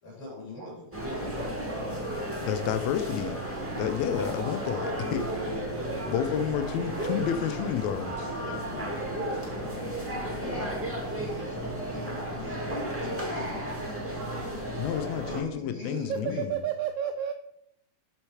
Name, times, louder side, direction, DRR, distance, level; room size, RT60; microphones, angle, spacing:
voice 1, 0.0-2.1 4.1-4.3 5.7-7.7 8.3-10.0 10.3-12.7 13.0-13.9 14.9-16.5, left 1 dB, 60° left, -4 dB, 4.5 m, -42 dB
sound 1, 0.9-15.4, right 1 dB, 5° right, 1.2 m, -33 dB
voice 2, 2.4-3.4 3.8-5.3 6.1-8.3 14.8-16.6, left 9 dB, 75° left, 10 dB, 1.6 m, -30 dB
voice 3, 15.9-17.3, right 8 dB, 80° right, 5 dB, 1.7 m, -32 dB
7.6 x 6.5 x 4.9 m, 0.75 s
omnidirectional pair, 3.7 m